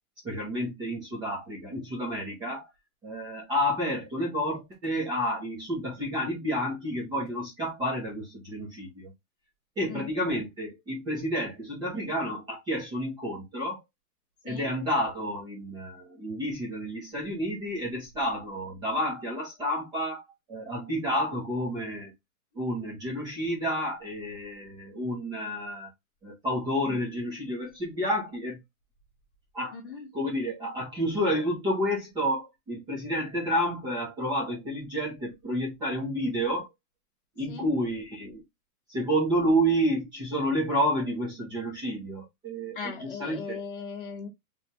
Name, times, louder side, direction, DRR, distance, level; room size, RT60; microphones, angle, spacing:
voice 1, 0.2-2.7 3.0-9.1 9.8-13.8 14.4-20.2 20.5-22.1 22.5-25.9 26.2-28.6 29.5-29.8 30.1-36.7 37.4-38.4 38.9-43.6, equal, 10° right, 1.0 m, -30 dB
voice 2, 29.7-30.1 37.5-37.7 42.7-44.3, left 6 dB, 35° left, 1.1 m, -38 dB
3.6 x 3.4 x 2.8 m
hypercardioid pair, 170°, 45 cm